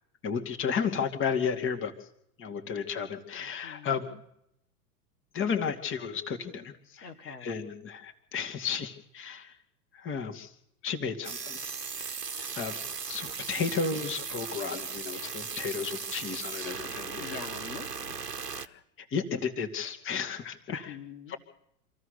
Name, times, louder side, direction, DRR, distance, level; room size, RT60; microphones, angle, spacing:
voice 1, 0.2-1.9 2.4-4.0 5.3-9.5 9.9-10.5 10.8-11.6 12.0-12.8 13.1-17.4 18.5-18.6 19.0-21.0 21.3-21.4, left 6 dB, 25° left, 5 dB, 2.3 m, -33 dB
voice 2, 3.3-4.2 7.0-7.6 17.2-18.2 20.7-21.4, left 5 dB, 75° left, 3 dB, 2.9 m, -45 dB
sound 1, 11.2-18.7, right 5 dB, 90° right, 1.2 m, -37 dB
27.0 x 15.0 x 6.6 m, 0.75 s
figure-of-eight pair, 95°, 47 cm